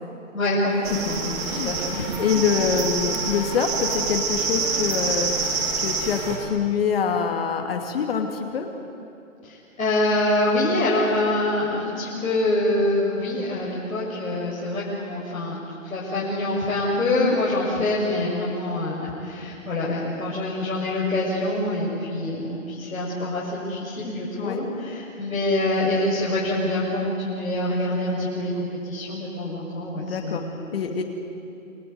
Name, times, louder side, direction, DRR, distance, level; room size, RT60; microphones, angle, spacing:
voice 1, 0.3-1.4 1.6-2.2 9.4-30.7, left 1 dB, 85° left, -7 dB, 6.7 m, -25 dB
sound 1, 0.8-6.4, right 4 dB, 15° right, 3.1 m, -27 dB
voice 2, 1.2-1.7 2.2-8.7 17.2-17.4 24.4-24.6 29.9-30.4 30.7-31.0, left 6 dB, 45° left, 4 dB, 2.4 m, -25 dB
28.5 x 19.0 x 9.5 m, 2.6 s
hypercardioid pair, 155°, 40 cm